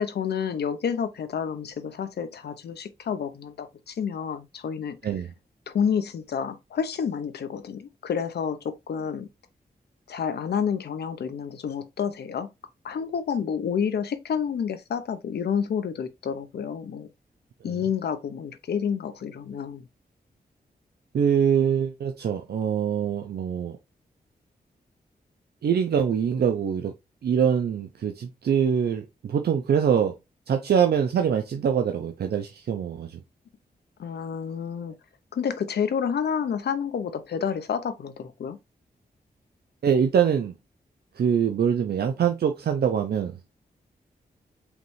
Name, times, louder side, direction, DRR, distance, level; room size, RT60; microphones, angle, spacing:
voice 1, 0.0-5.0 5.7-9.3 10.1-12.5 12.8-17.1 17.6-19.8 34.0-34.9 35.3-38.6, left 7 dB, 85° left, 0.7 m, -29 dB
voice 2, 21.1-23.8 25.6-26.9 27.2-30.1 30.5-33.2 39.8-40.5 41.2-43.4, right 7 dB, 75° right, 0.6 m, -24 dB
5.0 x 3.1 x 3.1 m
wide cardioid pair, 90°, 16 cm